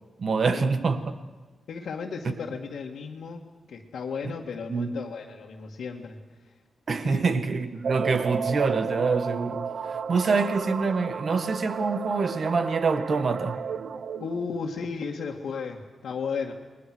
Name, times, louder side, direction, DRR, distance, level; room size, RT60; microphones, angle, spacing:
voice 1, 0.2-1.1 4.2-4.3 4.7-4.9 6.9-13.6, right 4 dB, 45° right, 1.7 m, -26 dB
voice 2, 1.7-6.2 7.0-7.3 14.2-16.5, left 5 dB, 70° left, 2.1 m, -34 dB
sound 1, 7.8-14.5, right 6 dB, 60° right, 0.9 m, -33 dB
29.0 x 22.0 x 6.4 m
wide cardioid pair, 160°, 0 cm